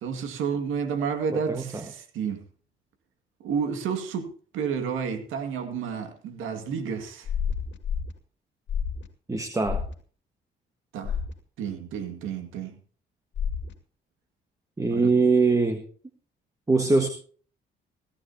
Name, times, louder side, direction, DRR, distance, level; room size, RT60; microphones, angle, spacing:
voice 1, 0.0-2.4 3.4-4.3 4.5-7.3 10.9-11.2 11.6-12.8 14.9-15.1, right 6 dB, 90° right, 2.2 m, -30 dB
voice 2, 1.5-1.8 9.3-9.8 14.8-15.8 16.7-17.1, right 3 dB, 15° right, 1.5 m, -22 dB
sound 1, 7.2-8.1 8.7-9.1 9.6-9.9 11.0-11.3 13.4-13.7, left 7 dB, 65° left, 2.1 m, -29 dB
17.0 x 14.0 x 2.8 m
cardioid pair, 90°, 20 cm